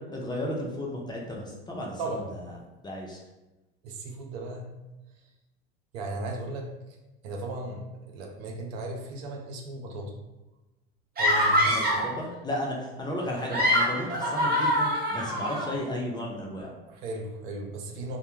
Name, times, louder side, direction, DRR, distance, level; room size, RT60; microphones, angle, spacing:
voice 1, 0.1-2.4 2.8-3.2 11.7-16.7, left 1 dB, 15° left, -2 dB, 0.5 m, -34 dB
voice 2, 2.0-2.4 3.8-4.6 5.9-6.7 7.2-10.1 11.2-11.9 16.9-18.2, right 2 dB, 65° right, 1 dB, 0.6 m, -36 dB
sound 1, 11.2-12.1 13.3-15.7, equal, 30° right, 0.9 m, -24 dB
2.1 x 2.1 x 3.0 m, 1.0 s
hypercardioid pair, 80°, 32 cm